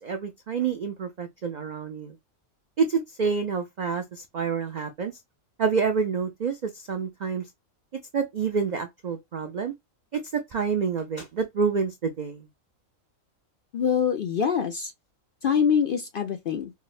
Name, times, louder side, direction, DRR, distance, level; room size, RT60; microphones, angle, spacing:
voice 1, 0.0-2.2 2.8-5.1 5.6-7.4 8.1-9.7 10.1-12.5, right 5 dB, 80° right, 0.4 m, -28 dB
voice 2, 13.7-14.9 15.4-16.7, left 7 dB, 60° left, 0.6 m, -24 dB
4.8 x 2.1 x 2.3 m
omnidirectional pair, 1.4 m